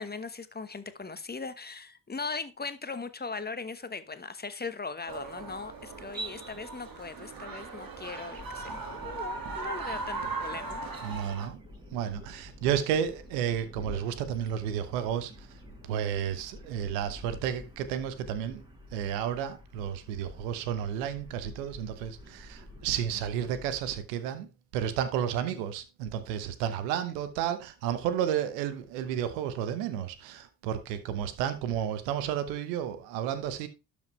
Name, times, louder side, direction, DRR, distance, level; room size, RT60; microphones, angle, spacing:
voice 1, 0.0-10.8, left 4 dB, 20° left, 1.1 m, -39 dB
sound 1, 5.1-11.5, right 3 dB, 45° right, 2.0 m, -38 dB
sound 2, 8.4-24.0, left 1 dB, 10° right, 5.0 m, -49 dB
voice 2, 11.0-11.6 11.9-15.5 15.9-18.6 18.9-24.5 24.7-33.7, right 9 dB, 80° right, 1.1 m, -32 dB
12.0 x 5.2 x 3.1 m
hypercardioid pair, 45°, 49 cm